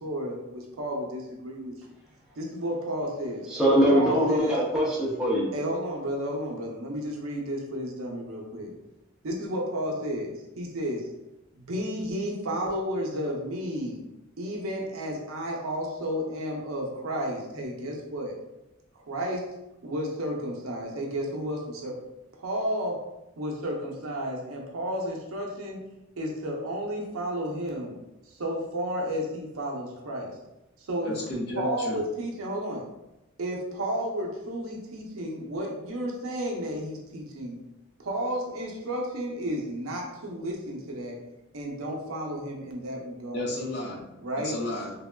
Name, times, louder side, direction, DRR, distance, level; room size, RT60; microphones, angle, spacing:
voice 1, 0.0-1.7 2.4-3.5 3.9-4.8 5.5-8.7 9.2-11.1 11.5-14.0 14.4-18.4 19.1-19.5 19.8-21.9 22.4-23.0 23.4-25.8 26.2-27.9 28.4-30.3 30.8-31.1 31.6-32.8 33.4-37.6 38.0-41.2 41.5-43.5 44.2-44.5, equal, 80° right, -1 dB, 0.6 m, -32 dB
voice 2, 3.5-5.5, equal, 5° right, -7 dB, 0.7 m, -22 dB
voice 3, 31.0-32.0 43.3-44.0 44.4-44.9, left 1 dB, 50° left, -3 dB, 0.6 m, -32 dB
3.4 x 2.2 x 2.2 m, 0.94 s
head